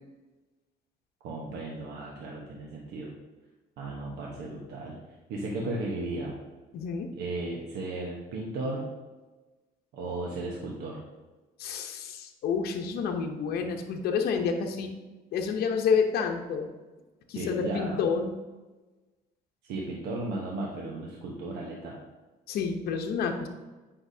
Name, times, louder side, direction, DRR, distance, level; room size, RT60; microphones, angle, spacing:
voice 1, 1.2-3.1 3.8-5.0 5.3-6.4 7.1-8.9 9.9-11.0 17.3-18.0 19.6-22.0, right 2 dB, 85° right, -2 dB, 1.1 m, -35 dB
voice 2, 6.7-7.1 11.6-14.9 15.3-16.7 17.3-18.3 22.5-23.5, left 6 dB, 70° left, 3 dB, 0.9 m, -29 dB
8.3 x 5.7 x 2.7 m, 1.2 s
cardioid pair, 110°, 17 cm